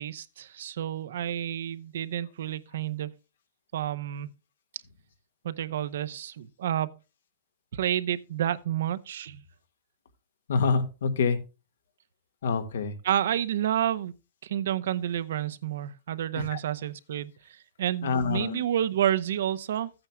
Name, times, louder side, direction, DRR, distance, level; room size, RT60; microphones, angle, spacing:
voice 1, 0.0-3.1 3.7-4.3 5.4-6.9 7.7-9.4 13.0-14.1 14.4-19.9, right 11 dB, 70° right, 0.7 m, -30 dB
voice 2, 10.5-11.4 12.4-12.9 16.4-16.6 18.0-18.6, left 5 dB, 80° left, 1.6 m, -26 dB
14.0 x 8.8 x 2.2 m
supercardioid pair, 170°, 0 cm